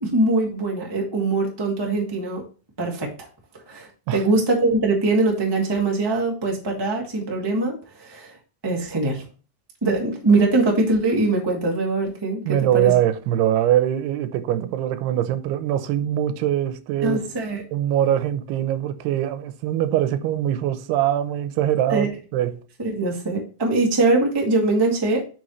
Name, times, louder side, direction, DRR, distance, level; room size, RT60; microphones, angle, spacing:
voice 1, 0.0-2.4 2.8-3.3 3.7-8.4 8.6-9.2 9.8-12.9 17.0-17.6 21.9-22.1 22.8-25.3, right 2 dB, 20° right, 0.6 m, -22 dB
voice 2, 12.5-17.2 17.7-22.6, right 11 dB, 90° right, 2.8 m, -22 dB
7.8 x 6.1 x 3.1 m
omnidirectional pair, 4.6 m